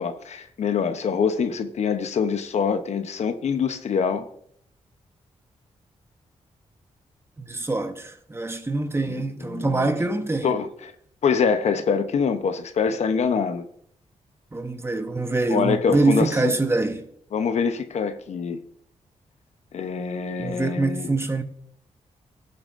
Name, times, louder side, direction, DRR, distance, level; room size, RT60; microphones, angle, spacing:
voice 1, 0.0-4.3 9.1-9.2 9.5-9.9 10.4-10.7 11.2-13.6 15.5-16.5 17.3-18.6 19.7-21.1, left 6 dB, 65° left, 0.8 m, -24 dB
voice 2, 7.4-10.6 14.5-17.0 20.4-21.4, right 2 dB, 20° right, 1.0 m, -24 dB
16.0 x 6.9 x 2.6 m
cardioid pair, 85°, 12 cm